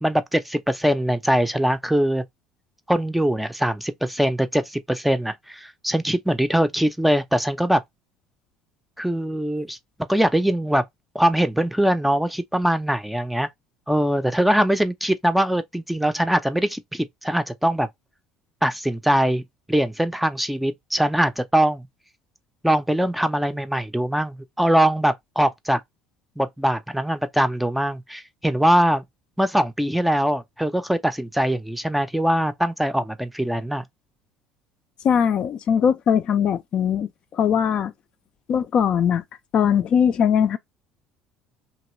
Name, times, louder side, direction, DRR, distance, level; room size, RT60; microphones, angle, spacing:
voice 1, 0.0-2.2 2.9-7.8 9.0-9.8 10.1-10.8 11.1-13.5 13.9-17.9 18.6-19.4 19.7-21.9 22.6-25.8 26.4-29.0 29.4-33.8, right 1 dB, 5° right, 0.6 m, -22 dB
voice 2, 35.0-37.9 38.5-39.2 39.5-40.6, left 8 dB, 45° left, 0.5 m, -20 dB
3.0 x 2.9 x 3.0 m
hypercardioid pair, 65°, 2 cm